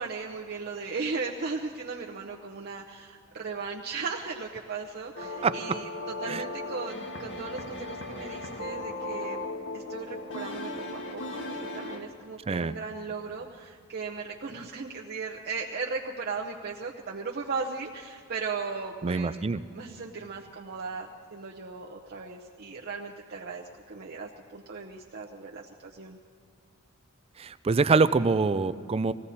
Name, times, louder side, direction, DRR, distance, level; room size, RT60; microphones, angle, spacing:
voice 1, 0.0-5.9 6.2-9.4 9.7-19.4 19.7-26.2, right 4 dB, 50° right, -1 dB, 0.8 m, -37 dB
sound 1, 5.2-12.0, left 2 dB, 60° left, 1.4 m, -37 dB
voice 2, 5.4-5.8 6.3-6.4 12.5-12.7 19.0-19.6 27.4-29.1, right 4 dB, 30° right, 14 dB, 0.4 m, -25 dB
19.0 x 16.0 x 4.2 m, 2.3 s
head